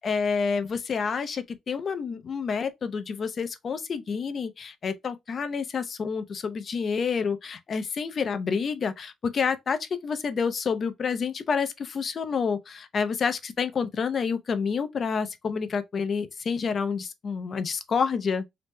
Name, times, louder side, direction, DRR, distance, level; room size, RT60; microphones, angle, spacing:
voice 1, 0.0-18.4, left 5 dB, 50° left, 0.5 m, -28 dB
2.9 x 2.0 x 3.4 m
cardioid pair, 90°, 0 cm